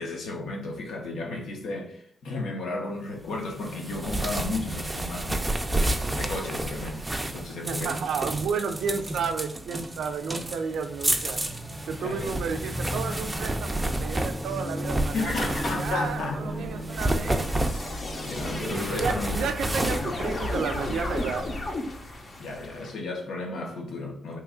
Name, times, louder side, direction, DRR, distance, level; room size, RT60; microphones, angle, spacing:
voice 1, 0.0-5.5 6.1-8.0 12.0-12.3 15.1-16.7 18.2-19.4 22.4-24.4, left 2 dB, 85° left, 0.7 m, -33 dB
sound 1, 3.2-19.3, equal, 10° left, 0.7 m, -39 dB
sound 2, 3.6-16.2 16.8-21.1, right 1 dB, 15° right, 0.4 m, -31 dB
voice 2, 7.6-11.4 11.9-15.3 15.7-17.6 18.9-21.5, right 6 dB, 90° right, 0.3 m, -32 dB
sound 3, 15.9-22.9, left 2 dB, 45° left, 0.6 m, -34 dB
3.0 x 2.3 x 3.6 m
cardioid pair, 90°, 0 cm